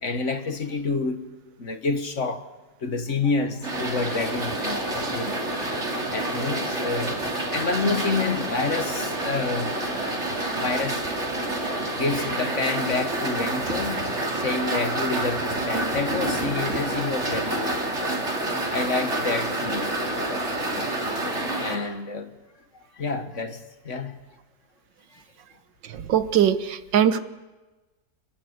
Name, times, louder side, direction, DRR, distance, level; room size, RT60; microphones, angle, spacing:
voice 1, 0.0-1.3 1.6-2.5 2.8-5.4 6.1-9.8 10.6-11.1 11.9-18.3 18.7-20.8 21.6-22.3 22.7-24.2 25.1-25.2, left 3 dB, 45° left, 1.6 m, -29 dB
sound 1, 3.6-21.7, right 1 dB, 40° right, 3.5 m, -28 dB
voice 2, 25.8-27.2, right 9 dB, 85° right, 1.8 m, -21 dB
29.0 x 21.0 x 8.0 m
omnidirectional pair, 1.9 m